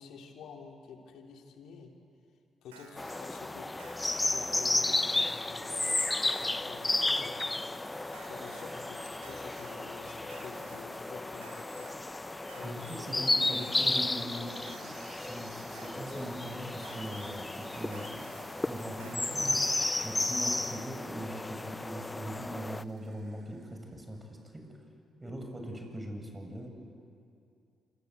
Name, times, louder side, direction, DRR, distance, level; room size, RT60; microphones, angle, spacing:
voice 1, 0.0-1.9 2.6-3.7 4.2-7.5 8.2-11.9 12.5-14.1, left 5 dB, 70° left, 2 dB, 3.1 m, -49 dB
Alarm, 2.7-3.2 3.8-4.3 4.9-5.4 6.0-6.5 7.0-7.6 8.1-8.7 9.2-9.8 10.3-10.8 11.4-11.9 12.5-13.0 13.6-14.1 14.7-15.2 15.7-16.3 16.8-17.4 17.9-18.5 19.0-19.5, right 4 dB, 90° right, 2.4 m, -54 dB
sound 1, 3.0-22.8, left 2 dB, 20° left, 0.7 m, -33 dB
sound 2, 5.8-24.4 24.6-24.7, right 5 dB, 55° right, 3.0 m, -57 dB
voice 2, 12.6-14.6 15.2-18.2 18.7-19.6 20.0-24.2 24.5-24.6 25.2-26.7, right 1 dB, 20° right, 3 dB, 7.3 m, -41 dB
27.0 x 24.5 x 8.2 m, 2.5 s
hypercardioid pair, 45°, 0 cm